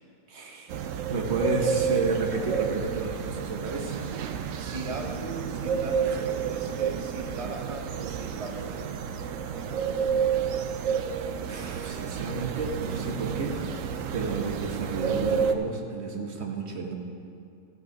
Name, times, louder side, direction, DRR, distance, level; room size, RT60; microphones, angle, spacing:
voice 1, 0.3-0.8 1.1-4.2 11.5-13.6 14.1-16.9, right 3 dB, 45° right, 2 dB, 1.1 m, -31 dB
sound 1, 0.7-15.5, right 7 dB, 70° right, 0.7 m, -30 dB
voice 2, 4.5-8.9, right 2 dB, 25° right, 1 dB, 0.9 m, -38 dB
14.5 x 6.3 x 5.2 m, 2.4 s
omnidirectional pair, 1.8 m